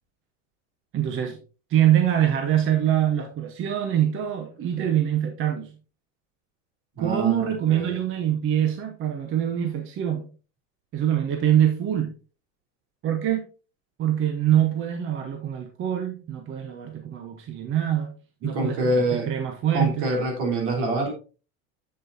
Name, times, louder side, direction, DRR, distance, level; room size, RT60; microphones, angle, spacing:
voice 1, 0.9-1.4 1.7-5.7 7.0-10.3 10.9-12.1 13.0-13.5 14.0-18.2 18.4-20.1, right 10 dB, 30° right, 0.9 m, -24 dB
voice 2, 7.0-7.4 7.7-8.0 18.4-19.3 19.7-21.1, right 1 dB, 65° right, 3.7 m, -25 dB
7.8 x 7.5 x 2.7 m
supercardioid pair, 145°, 38 cm